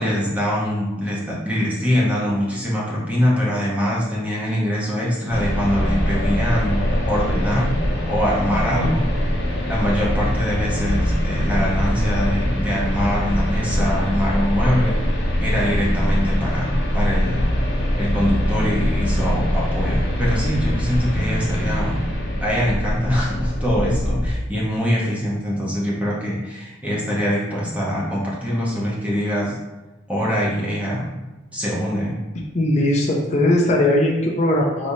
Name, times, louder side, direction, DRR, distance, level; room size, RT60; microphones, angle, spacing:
voice 1, 0.0-7.7 8.1-9.1 9.7-15.0 15.4-17.4 18.0-22.0 22.3-29.6 30.1-31.1 31.5-32.2, equal, 10° right, -6 dB, 0.9 m, -23 dB
sound 1, 5.3-24.3, equal, 65° left, 1.0 m, -22 dB
voice 2, 32.5-34.9, left 1 dB, 35° left, -2 dB, 0.5 m, -19 dB
5.2 x 3.2 x 2.7 m, 1.1 s
head